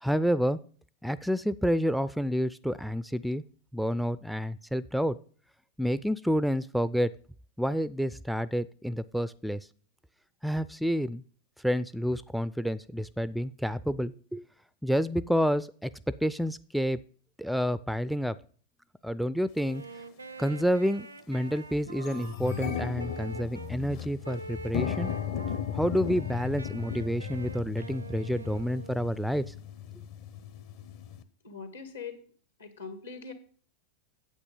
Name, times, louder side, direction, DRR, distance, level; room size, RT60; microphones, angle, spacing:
voice 1, 0.0-0.6 1.0-3.4 3.7-5.2 5.8-7.1 7.6-9.6 10.4-11.2 11.6-14.4 14.8-15.9 16.2-17.0 17.4-18.4 19.0-19.8 20.4-25.1 25.7-29.4, equal, ahead, 17 dB, 0.3 m, -29 dB
Wind instrument woodwind instrument, 19.5-23.7 24.2-25.6 26.0-29.3, right 3 dB, 80° right, 0.5 m, -45 dB
sound 1, 19.6-19.7 20.5-20.7 21.1-21.2 21.5-31.2, left 8 dB, 50° left, 0.9 m, -36 dB
voice 2, 31.4-32.2 32.6-33.3, left 5 dB, 70° left, 8 dB, 1.8 m, -41 dB
8.8 x 8.0 x 5.2 m, 0.43 s
figure-of-eight pair, 90°, 0 cm